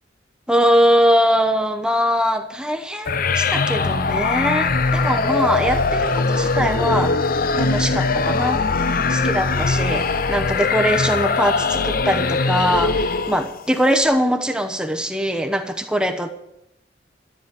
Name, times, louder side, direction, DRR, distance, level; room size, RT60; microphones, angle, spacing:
voice 1, 0.5-7.1 7.6-8.6 9.1-16.3, equal, 5° right, 7 dB, 0.9 m, -21 dB
sound 1, 3.1-13.6, left 4 dB, 50° left, 0.7 m, -21 dB
13.5 x 9.3 x 8.1 m, 0.82 s
head